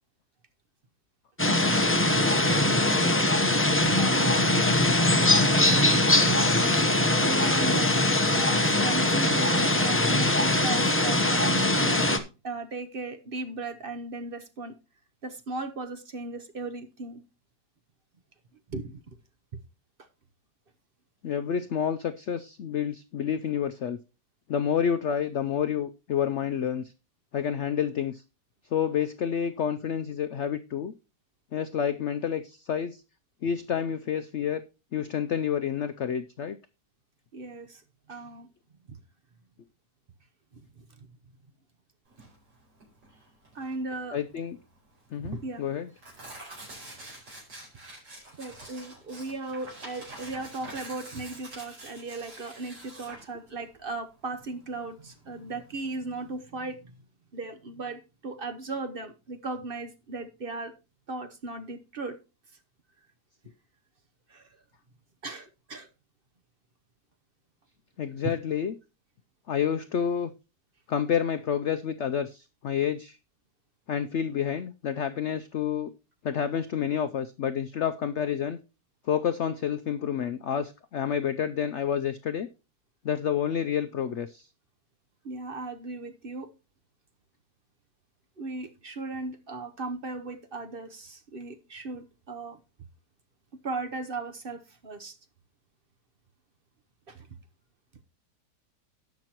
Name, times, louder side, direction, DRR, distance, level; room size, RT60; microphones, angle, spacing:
sound 1, 1.4-12.2, left 1 dB, 15° left, 0.4 m, -22 dB
voice 1, 3.9-4.5 7.2-14.7 15.2-17.2 18.7-19.2 37.3-37.8 38.1-38.5 38.9-39.0 40.5-41.1 43.5-44.2 45.3-45.6 48.4-56.9 57.3-60.7 61.1-62.2 64.3-64.5 65.2-65.9 85.2-86.5 88.4-92.6 93.5-95.2 97.1-97.3, right 3 dB, 40° right, 0.8 m, -37 dB
voice 2, 21.2-24.0 24.5-26.9 27.3-28.2 28.7-30.9 31.5-33.0 33.4-34.6 34.9-36.6 44.1-44.6 45.1-45.9 68.0-68.7 69.5-70.3 70.9-73.2 73.9-75.9 76.2-78.6 79.1-82.5 83.0-84.5, left 8 dB, 75° left, 0.6 m, -29 dB
Tearing, 42.1-56.3, right 1 dB, 90° right, 5.7 m, -47 dB
18.0 x 6.1 x 2.9 m
omnidirectional pair, 1.8 m